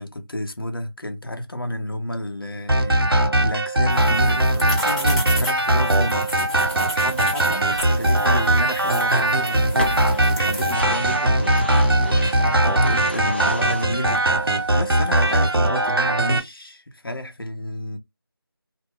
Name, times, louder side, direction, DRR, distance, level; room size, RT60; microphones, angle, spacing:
voice 1, 0.0-6.6 6.9-7.7 8.0-18.0, left 1 dB, 65° left, 0.8 m, -31 dB
sound 1, 2.7-16.4, right 1 dB, 70° right, 0.8 m, -20 dB
sound 2, 3.9-10.7, equal, 15° right, 0.7 m, -34 dB
sound 3, 6.5-15.5, right 1 dB, 25° left, 0.4 m, -34 dB
2.2 x 2.2 x 3.6 m
figure-of-eight pair, 170°, 13 cm